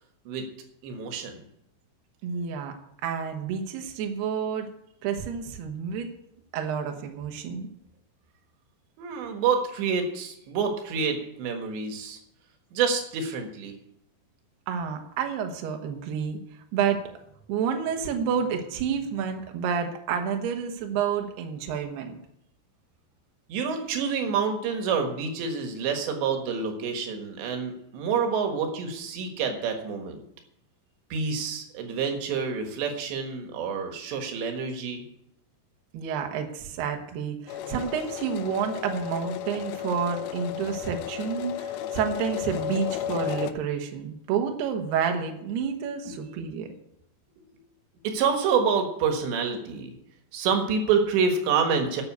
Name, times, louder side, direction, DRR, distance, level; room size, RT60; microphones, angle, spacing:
voice 1, 0.8-1.4 9.0-12.2 12.7-13.7 23.5-30.2 31.1-35.0 46.1-46.3 48.0-49.9 50.3-52.0, right 6 dB, 90° right, 4 dB, 3.8 m, -27 dB
voice 2, 2.2-2.8 3.0-4.7 5.0-6.1 6.5-7.7 14.7-16.4 16.7-17.0 17.5-22.1 35.9-46.7, right 7 dB, 75° right, 4 dB, 3.2 m, -29 dB
sound 1, 37.5-43.5, left 11 dB, 80° left, 2.3 m, -33 dB
12.0 x 6.9 x 8.2 m, 0.77 s
omnidirectional pair, 4.9 m